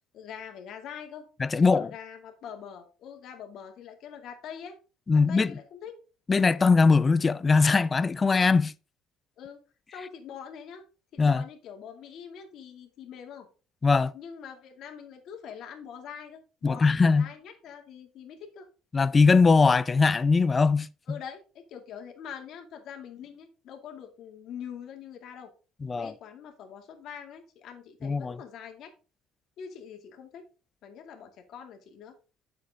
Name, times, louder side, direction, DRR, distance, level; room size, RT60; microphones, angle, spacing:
voice 1, 0.1-1.3 1.6-4.8 5.1-5.9 9.4-9.6 9.9-10.8 11.1-13.5 14.1-18.7 21.1-25.5 26.0-28.9 29.6-30.4 30.8-32.2, left 7 dB, 60° left, 2.2 m, -44 dB
voice 2, 1.4-1.9 5.1-5.6 6.3-8.7 11.2-11.4 13.8-14.1 16.6-17.3 18.9-20.9 25.8-26.1 28.0-28.4, left 4 dB, 25° left, 0.5 m, -21 dB
9.0 x 7.1 x 3.6 m
cardioid pair, 120°, 0 cm